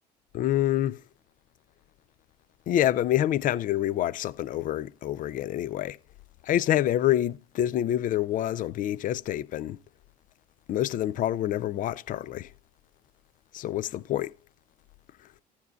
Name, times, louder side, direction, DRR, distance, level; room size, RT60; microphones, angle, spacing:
voice 1, 0.3-1.0 2.7-6.0 6.4-9.8 10.7-12.5 13.5-14.3, left 12 dB, 40° left, 0.5 m, -27 dB
15.5 x 7.1 x 2.4 m
figure-of-eight pair, 60°, 21 cm